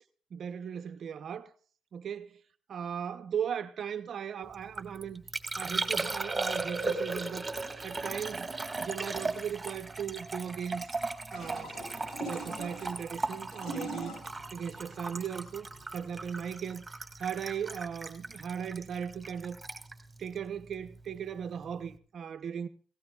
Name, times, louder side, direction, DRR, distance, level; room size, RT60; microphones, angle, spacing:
voice 1, 0.3-1.5 1.9-2.3 2.7-5.2 5.6-7.5 7.8-8.5 8.8-11.0 11.3-11.8 12.2-19.6 20.2-22.7, right 8 dB, 60° right, 0.6 m, -37 dB
Liquid, 4.5-21.2 21.4-22.0, right 3 dB, 20° right, 1.7 m, -37 dB
sound 1, 11.3-16.6, right 1 dB, 70° left, 7.7 m, -42 dB
17.5 x 17.0 x 2.3 m
cardioid pair, 90°, 0 cm